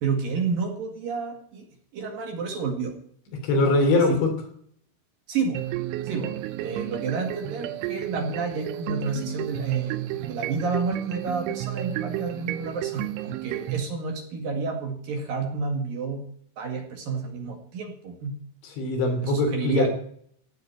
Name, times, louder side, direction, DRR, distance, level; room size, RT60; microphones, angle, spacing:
voice 1, 0.0-1.7 1.9-2.9 5.3-5.6 6.0-16.2 16.6-18.3 19.2-19.9, right 4 dB, 55° right, 3 dB, 3.3 m, -30 dB
voice 2, 3.4-4.3 18.8-19.9, left 2 dB, 70° left, 4 dB, 5.3 m, -22 dB
sound 1, 5.6-13.8, right 15 dB, 85° right, 3.2 m, -32 dB
17.0 x 8.0 x 9.0 m, 0.63 s
omnidirectional pair, 5.4 m